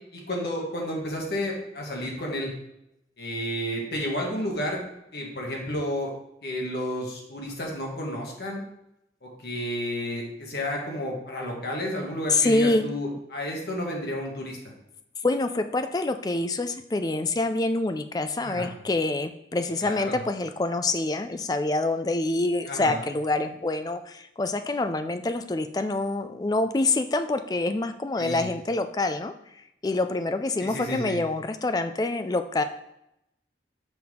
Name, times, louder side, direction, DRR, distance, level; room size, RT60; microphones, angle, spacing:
voice 1, 0.1-2.5 3.2-4.8 5.1-6.1 6.4-8.6 9.2-14.7 18.4-18.7 19.8-20.2 22.7-23.0 28.2-28.5 30.6-31.2, left 1 dB, 60° left, -1 dB, 1.6 m, -31 dB
voice 2, 12.3-12.9 15.2-29.3 29.8-32.6, left 2 dB, 20° left, 8 dB, 0.3 m, -26 dB
6.0 x 5.8 x 3.6 m, 0.83 s
head